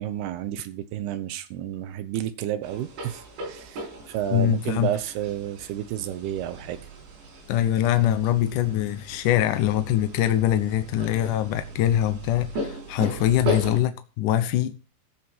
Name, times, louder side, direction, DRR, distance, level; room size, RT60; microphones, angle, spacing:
voice 1, 0.0-6.8, right 11 dB, 75° right, 2.7 m, -31 dB
sound 1, 2.6-13.8, equal, 90° right, 7.0 m, -36 dB
voice 2, 4.3-4.9 7.5-14.8, left 12 dB, 85° left, 1.8 m, -23 dB
14.5 x 7.7 x 4.6 m
omnidirectional pair, 5.1 m